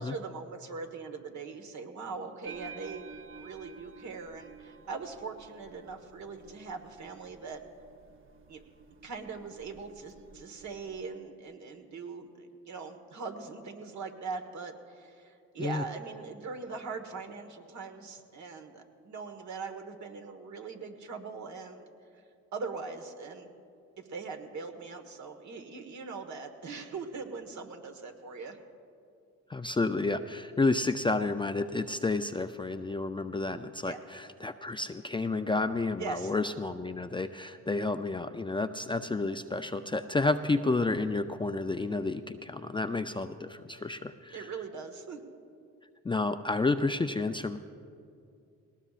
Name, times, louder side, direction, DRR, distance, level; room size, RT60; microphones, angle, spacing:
voice 1, 0.0-3.1 3.3-7.6 8.5-8.6 9.0-21.9 22.5-23.5 24.0-28.6 33.8-34.0 36.0-36.3 44.3-45.2, right 4 dB, 60° right, 5 dB, 1.6 m, -41 dB
sound 1, 2.4-11.1, right 5 dB, 40° right, 0.8 m, -52 dB
voice 2, 29.5-44.5 46.0-47.6, left 3 dB, 15° left, 8 dB, 0.4 m, -30 dB
20.0 x 18.5 x 2.5 m, 2.4 s
supercardioid pair, 75°, 32 cm